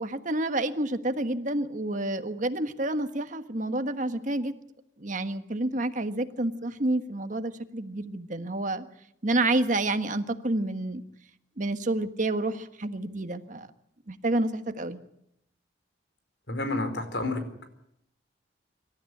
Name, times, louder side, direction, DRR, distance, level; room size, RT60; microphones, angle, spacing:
voice 1, 0.0-4.5 5.0-8.8 9.2-11.0 11.6-13.7 14.1-15.0, right 2 dB, 45° right, 8 dB, 1.5 m, -29 dB
voice 2, 16.5-17.7, left 2 dB, 80° left, 8 dB, 4.5 m, -30 dB
26.0 x 13.5 x 10.0 m, 0.75 s
head